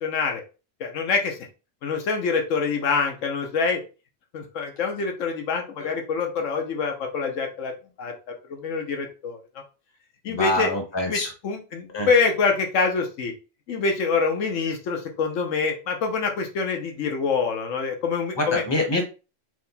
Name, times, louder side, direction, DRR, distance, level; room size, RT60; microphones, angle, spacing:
voice 1, 0.0-0.4 0.8-1.4 1.8-3.8 4.3-7.7 8.0-8.1 8.5-9.4 10.2-10.7 11.1-13.3 13.7-18.6, left 5 dB, 85° left, 2 dB, 1.2 m, -25 dB
voice 2, 10.3-11.3 11.9-12.1 18.4-19.0, left 1 dB, 20° left, 2 dB, 1.1 m, -25 dB
4.7 x 2.2 x 4.0 m, 0.32 s
omnidirectional pair, 1.2 m